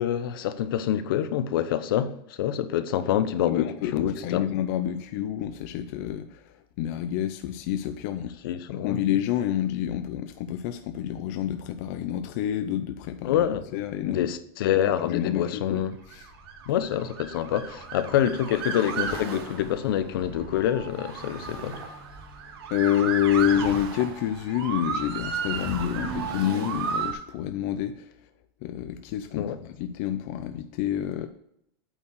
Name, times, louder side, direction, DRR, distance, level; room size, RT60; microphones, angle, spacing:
voice 1, 0.0-4.4 8.4-9.0 13.2-13.6 14.1-15.9 16.7-21.8 29.4-29.6, left 10 dB, 65° left, 0.8 m, -26 dB
voice 2, 3.5-8.3 8.7-13.4 13.7-14.3 15.1-15.8 16.1-16.3 22.7-28.1 28.6-31.3, left 11 dB, 40° left, 0.5 m, -28 dB
Motor vehicle (road) / Siren, 16.0-27.1, right 6 dB, 90° right, 2.0 m, -34 dB
8.7 x 4.7 x 6.5 m
supercardioid pair, 180°, 12 cm